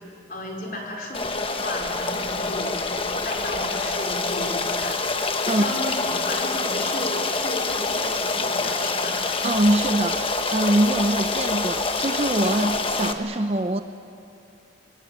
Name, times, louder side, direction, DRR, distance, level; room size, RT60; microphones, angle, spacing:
voice 1, 0.3-5.0 5.4-9.2, left 1 dB, 45° left, -1 dB, 4.4 m, -34 dB
Stream, 1.1-13.1, left 3 dB, 30° left, 1.2 m, -26 dB
voice 2, 9.4-13.8, right 1 dB, 30° right, 8 dB, 0.7 m, -23 dB
26.0 x 20.5 x 8.8 m, 2.6 s
head